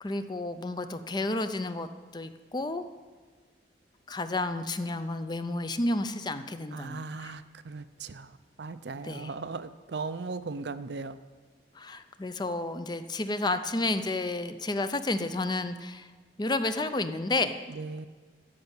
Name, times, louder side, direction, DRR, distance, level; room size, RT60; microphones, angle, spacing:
voice 1, 0.0-1.9 2.1-2.8 4.1-7.3 9.0-9.3 11.7-16.1 16.4-17.5, left 2 dB, 25° left, 10 dB, 0.5 m, -31 dB
voice 2, 6.7-11.2 17.7-18.1, right 4 dB, 70° right, 12 dB, 0.5 m, -38 dB
13.5 x 5.4 x 8.8 m, 1.4 s
head